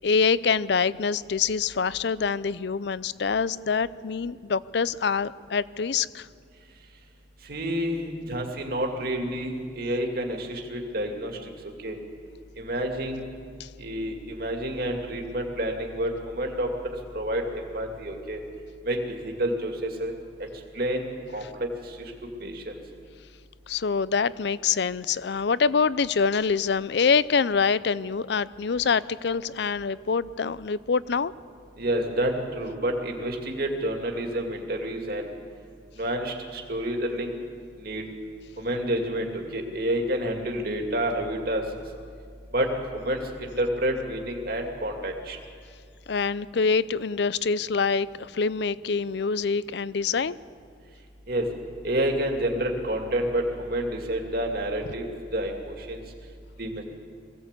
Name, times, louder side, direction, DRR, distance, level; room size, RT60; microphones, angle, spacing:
voice 1, 0.0-6.3 13.6-13.7 23.7-31.3 46.1-50.4, left 5 dB, 60° left, 18 dB, 0.5 m, -25 dB
voice 2, 7.5-11.4 11.8-12.0 12.6-13.3 13.8-16.7 17.1-18.4 18.9-20.1 20.7-21.1 21.3-21.7 22.0-22.1 22.4-22.7 31.8-35.3 36.0-37.4 37.8-38.0 38.6-41.6 42.5-42.7 42.9-45.4 51.3-51.5 51.8-55.1 55.3-56.0 56.6-56.8, right 1 dB, 50° right, 2 dB, 2.4 m, -29 dB
22.0 x 16.5 x 8.3 m, 2.2 s
head